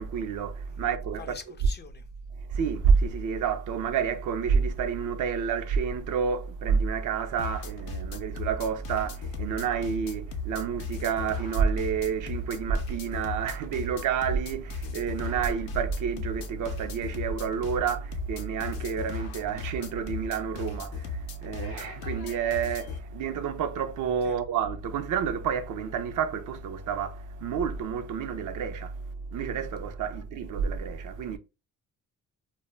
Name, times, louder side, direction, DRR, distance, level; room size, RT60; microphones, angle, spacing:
voice 1, 0.0-1.3 2.4-29.1 29.3-31.4, right 6 dB, 60° right, 0.4 m, -29 dB
voice 2, 1.2-2.1 24.2-24.4, left 5 dB, 30° left, 0.4 m, -44 dB
sound 1, 7.4-23.0, left 3 dB, 85° left, 0.6 m, -37 dB
2.1 x 2.0 x 3.2 m
cardioid pair, 85°, 35 cm